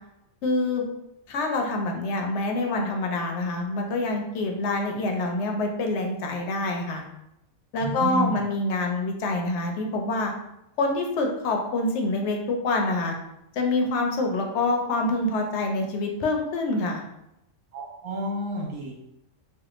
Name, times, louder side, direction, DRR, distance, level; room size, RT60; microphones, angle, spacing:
voice 1, 0.4-0.8 1.3-7.0 7.7-10.3 10.8-13.1 13.5-17.0, left 2 dB, 65° left, 2 dB, 0.8 m, -26 dB
voice 2, 7.8-8.4 17.7-18.9, right 1 dB, 70° right, -1 dB, 1.1 m, -30 dB
3.2 x 2.2 x 2.9 m, 0.85 s
omnidirectional pair, 1.5 m